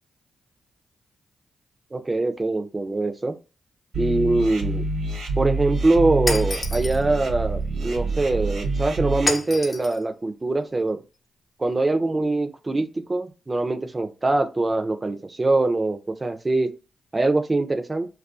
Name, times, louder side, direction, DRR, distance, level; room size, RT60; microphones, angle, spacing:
voice 1, 1.9-3.4 4.0-4.9 5.4-11.0 11.6-16.7 17.1-18.1, right 2 dB, 30° right, 8 dB, 0.5 m, -23 dB
sound 1, 3.9-9.3, right 3 dB, 70° right, 0.8 m, -27 dB
Shatter, 6.3-7.0 9.3-10.0, left 3 dB, 40° left, 0.6 m, -28 dB
2.3 x 2.3 x 2.5 m, 0.31 s
supercardioid pair, 45°, 0 cm